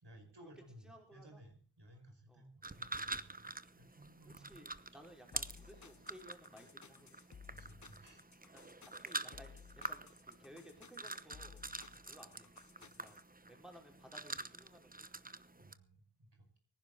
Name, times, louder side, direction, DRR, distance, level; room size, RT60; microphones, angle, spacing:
voice 1, 0.0-4.7 7.5-8.2 8.7-8.9 13.1-13.2 15.6-16.6, right 1 dB, 60° right, 4 dB, 5.3 m, -59 dB
voice 2, 0.8-1.4 2.3-2.5 4.2-7.2 8.5-8.7 9.0-9.6 9.9-11.6 12.1-12.5 12.8-15.0, equal, ahead, 2 dB, 4.5 m, -58 dB
sound 1, 2.6-15.7, right 2 dB, 20° right, 0.9 m, -47 dB
sound 2, 5.3-13.2, left 6 dB, 40° left, 0.8 m, -58 dB
24.0 x 10.5 x 3.9 m, 0.43 s
wide cardioid pair, 55°, 47 cm